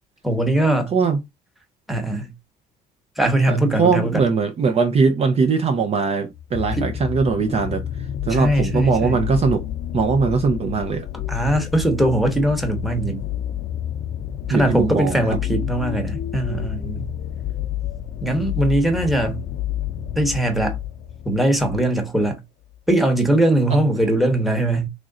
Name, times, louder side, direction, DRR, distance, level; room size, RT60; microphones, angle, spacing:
voice 1, 0.2-0.9 1.9-2.3 3.2-4.2 6.7-6.9 8.3-9.2 11.3-13.2 14.5-17.1 18.2-19.4 20.2-20.8 21.3-22.4 22.9-24.9, right 1 dB, ahead, 1.0 m, -20 dB
voice 2, 3.5-7.8 8.3-9.6 9.9-11.0 14.5-15.2, right 5 dB, 40° right, 0.5 m, -20 dB
sound 1, 6.3-21.9 22.7-22.8, left 11 dB, 65° left, 0.5 m, -29 dB
3.1 x 2.5 x 3.6 m
cardioid pair, 110°, 17 cm